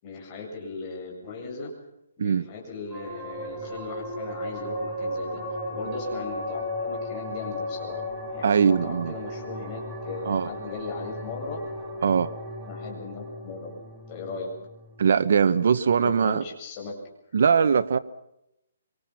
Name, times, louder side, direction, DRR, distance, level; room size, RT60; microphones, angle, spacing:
voice 1, 0.0-1.7 2.2-5.4 5.7-8.0 8.3-11.6 12.7-13.8 14.1-14.5 16.0-17.0, left 4 dB, 25° left, -1 dB, 7.8 m, -38 dB
sound 1, 2.9-15.7, left 1 dB, 5° right, 4.9 m, -35 dB
voice 2, 8.4-9.1 10.2-10.5 12.0-12.3 15.0-16.4 17.3-18.0, right 6 dB, 55° right, 13 dB, 1.0 m, -21 dB
26.0 x 25.5 x 6.0 m, 0.84 s
hypercardioid pair, 170°, 0 cm